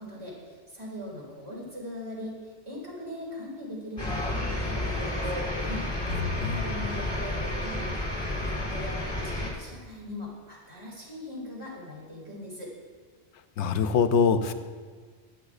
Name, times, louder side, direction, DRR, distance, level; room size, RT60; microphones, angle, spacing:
voice 1, 0.0-5.9 6.5-12.7, left 1 dB, 25° right, -5 dB, 2.6 m, -40 dB
sound 1, 4.0-9.5, left 1 dB, 20° left, 1.9 m, -31 dB
voice 2, 6.1-6.7 13.6-14.5, left 6 dB, 75° left, 9 dB, 0.9 m, -24 dB
13.5 x 8.8 x 2.4 m, 1.5 s
omnidirectional pair, 1.2 m